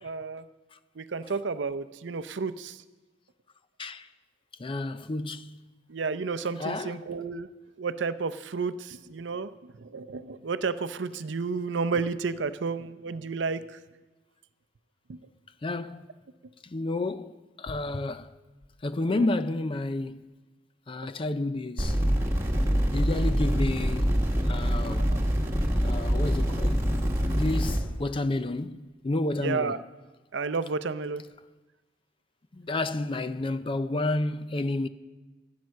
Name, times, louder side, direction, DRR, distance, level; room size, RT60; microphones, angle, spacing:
voice 1, 0.0-0.4 1.0-2.8 5.9-7.5 7.8-9.5 9.8-13.6 15.1-15.2 19.1-19.3 25.1-25.2 29.4-29.8 30.3-31.2, right 4 dB, 70° right, 0.6 m, -31 dB
voice 2, 4.6-5.6 6.6-6.9 15.6-16.1 16.6-18.3 18.8-20.3 20.9-22.0 22.9-24.2 24.5-25.1 25.8-26.8 27.2-29.8 32.5-34.9, left 2 dB, 30° left, 0.4 m, -30 dB
sound 1, 21.8-27.8, equal, 15° right, 1.7 m, -25 dB
15.0 x 9.4 x 6.4 m
head